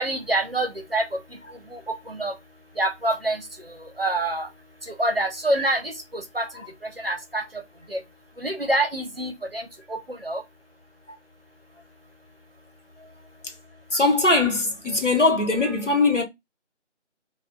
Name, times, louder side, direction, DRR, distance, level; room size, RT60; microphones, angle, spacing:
voice 1, 0.0-1.4 1.7-2.3 2.8-4.5 4.8-6.5 7.0-7.4 7.9-8.0 8.4-10.4, right 1 dB, 55° right, 0.6 m, -27 dB
voice 2, 13.9-16.2, left 3 dB, 75° left, 1.1 m, -21 dB
2.2 x 2.2 x 3.6 m
figure-of-eight pair, 180°, 36 cm